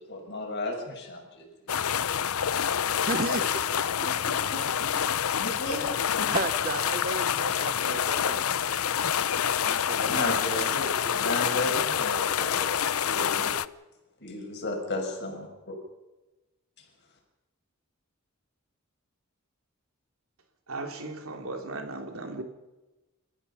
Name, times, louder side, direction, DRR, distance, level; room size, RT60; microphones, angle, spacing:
voice 1, 0.0-1.8 4.0-6.4 10.1-13.6 14.2-15.7, left 2 dB, 55° left, 2 dB, 6.7 m, -35 dB
sound 1, 1.7-13.7, left 8 dB, 80° left, 0.7 m, -27 dB
voice 2, 3.0-3.9 4.3-4.4 5.1-5.2 6.3-8.5 9.6-10.7 11.0-11.2, right 3 dB, 45° right, 11 dB, 1.1 m, -34 dB
voice 3, 20.7-22.4, right 2 dB, 70° right, 4 dB, 3.3 m, -36 dB
29.5 x 15.0 x 5.8 m, 1.1 s
head